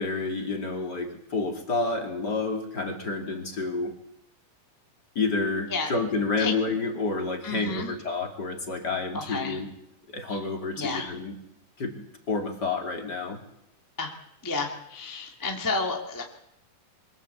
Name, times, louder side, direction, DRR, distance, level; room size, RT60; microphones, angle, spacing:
voice 1, 0.0-3.9 5.1-9.7 10.1-11.4 11.8-13.4, left 3 dB, 30° left, 3 dB, 2.9 m, -29 dB
voice 2, 7.4-7.9 9.1-9.6 10.8-11.1 14.0-14.1 14.4-16.2, left 3 dB, 5° left, 1 dB, 1.6 m, -31 dB
24.0 x 17.0 x 8.3 m, 0.80 s
omnidirectional pair, 3.8 m